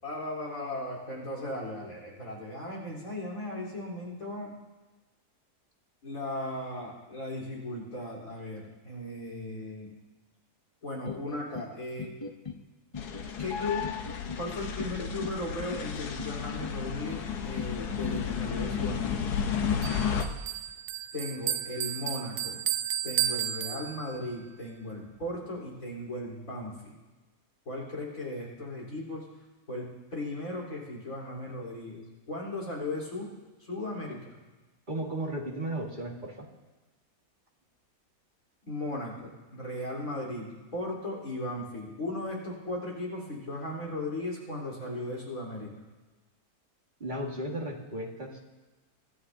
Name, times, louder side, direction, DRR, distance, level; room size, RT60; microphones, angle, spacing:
voice 1, 0.0-4.5 6.0-9.9 10.8-12.1 13.4-13.9 14.4-19.2 21.1-22.7 23.0-26.9 27.7-29.3 29.7-33.3 33.6-34.3 38.7-45.7, left 1 dB, 60° left, -4 dB, 4.6 m, -37 dB
sound 1, 11.1-11.7 12.0-12.6 12.9-13.5 13.8-14.4 14.8-15.4 15.7-16.3 16.6-17.2 17.6-18.2, left 4 dB, 35° left, 0.5 m, -39 dB
sound 2, 13.0-20.3, left 7 dB, 90° left, 1.5 m, -32 dB
Bell, 19.8-24.3, right 11 dB, 90° right, 1.2 m, -33 dB
voice 2, 34.9-36.5 47.0-48.4, right 1 dB, 30° right, -1 dB, 1.9 m, -35 dB
25.5 x 13.0 x 2.8 m, 1.2 s
omnidirectional pair, 1.6 m